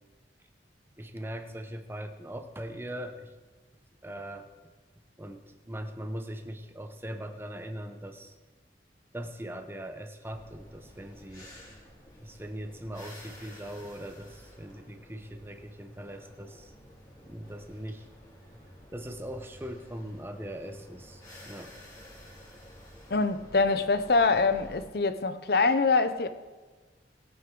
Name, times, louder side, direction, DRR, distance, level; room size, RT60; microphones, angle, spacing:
voice 1, 1.0-3.3 4.0-4.7 5.2-8.4 9.1-11.5 12.2-16.7 17.2-18.1 18.9-21.8, right 1 dB, 10° right, 0.8 m, -40 dB
sound 1, 10.2-24.8, equal, 20° left, 2.5 m, -51 dB
voice 2, 23.1-26.3, left 3 dB, 55° left, 0.7 m, -24 dB
20.0 x 8.9 x 3.8 m
head